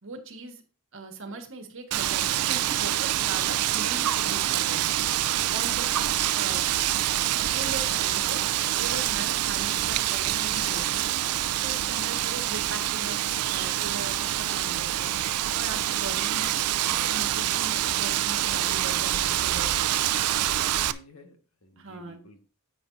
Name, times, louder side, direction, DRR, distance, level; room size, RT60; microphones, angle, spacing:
voice 1, 0.0-0.6 0.9-4.9 5.5-6.1 6.4-6.6 7.5-8.4 8.8-11.1 11.6-13.2 13.5-15.1 15.5-16.5 16.9-19.8 21.8-22.2, right 3 dB, 60° right, 5 dB, 1.6 m, -40 dB
Wind, 1.9-20.9, right 12 dB, 85° right, 0.5 m, -26 dB
voice 2, 20.0-22.4, left 2 dB, 65° left, 5 dB, 1.5 m, -52 dB
9.7 x 8.2 x 2.7 m, 0.37 s
head